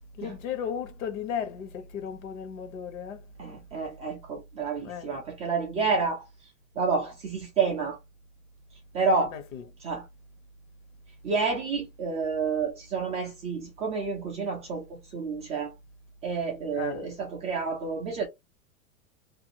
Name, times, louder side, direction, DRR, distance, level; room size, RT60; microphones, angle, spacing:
voice 1, 0.2-3.2 4.8-5.1 9.3-9.6 16.7-17.1, left 8 dB, 70° left, 1.0 m, -35 dB
voice 2, 3.4-6.3 6.8-8.0 8.9-9.4 9.8-10.1 11.2-15.7 16.2-18.3, right 4 dB, 15° right, 0.3 m, -29 dB
2.5 x 2.3 x 2.8 m
hypercardioid pair, 130°, 41 cm